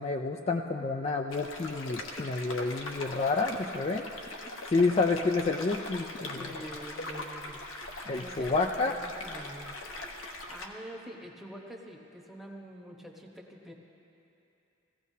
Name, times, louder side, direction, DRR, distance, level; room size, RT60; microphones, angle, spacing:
voice 1, 0.0-4.1 4.7-6.5 8.1-8.9, left 3 dB, 30° left, 2 dB, 0.4 m, -29 dB
sound 1, 1.3-10.7, left 2 dB, 90° left, 1.1 m, -41 dB
voice 2, 4.4-4.9 6.3-7.6 8.1-9.8 10.5-13.7, equal, ahead, -1 dB, 1.0 m, -46 dB
18.0 x 15.5 x 2.8 m, 2.9 s
head